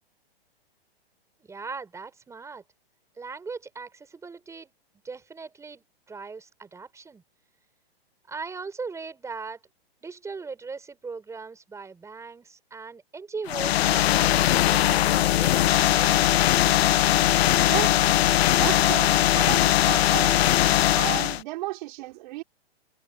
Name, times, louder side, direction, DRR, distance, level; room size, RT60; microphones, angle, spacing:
voice 1, 1.4-2.6 3.2-4.7 5.0-7.2 8.3-9.6 10.0-16.5, right 4 dB, 10° right, 4.5 m, -39 dB
sound 1, 13.5-21.4, left 13 dB, 80° left, 0.5 m, -20 dB
voice 2, 17.6-18.1 18.6-20.4 20.9-22.4, right 19 dB, 45° right, 5.5 m, -33 dB
hypercardioid pair, 140°, 31 cm